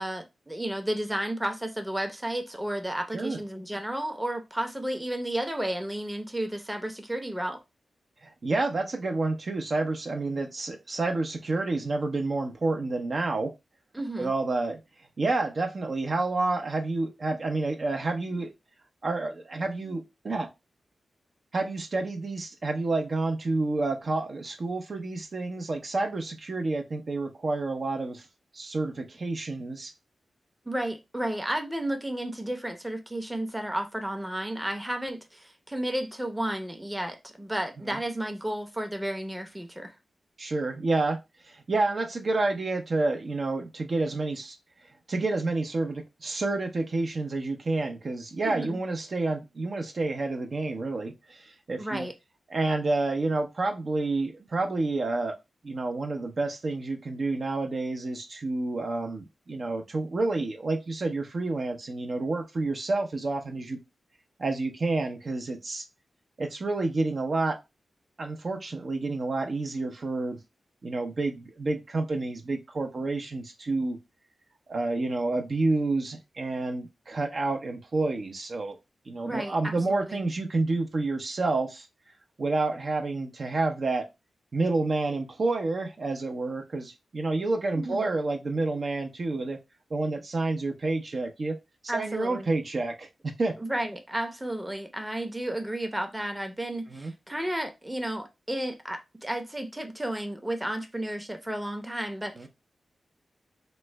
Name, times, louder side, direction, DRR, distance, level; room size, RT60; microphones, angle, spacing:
voice 1, 0.0-7.6 13.9-14.3 30.7-39.9 48.4-48.8 51.8-52.1 79.2-80.2 87.7-88.1 91.9-92.5 93.6-102.5, right 1 dB, 15° right, 0.7 m, -32 dB
voice 2, 8.2-13.5 14.2-14.8 15.2-18.5 19.0-20.5 21.5-28.2 28.5-29.9 37.9-38.0 40.4-44.6 45.1-52.1 52.5-55.3 55.6-63.8 64.4-65.8 66.4-67.6 68.2-70.4 70.8-74.0 74.7-78.8 79.1-81.9 82.4-84.1 84.5-89.6 89.9-91.6 91.9-93.6 96.9-97.1 102.4-102.5, right 3 dB, 55° right, 0.6 m, -29 dB
3.0 x 2.1 x 3.2 m
cardioid pair, 55°, 0 cm